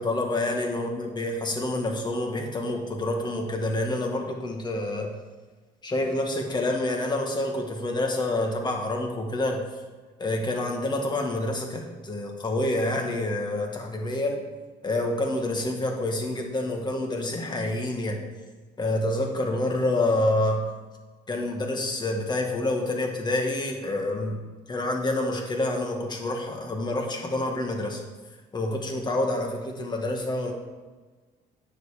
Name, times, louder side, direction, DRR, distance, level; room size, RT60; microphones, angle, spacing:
voice 1, 0.0-5.1 5.8-9.6 10.2-14.4 14.8-18.2 18.8-20.7 21.3-24.4 24.7-28.0 28.5-30.5, left 1 dB, 25° left, 2 dB, 1.8 m, -27 dB
9.6 x 7.1 x 5.0 m, 1.3 s
cardioid pair, 110°, 17 cm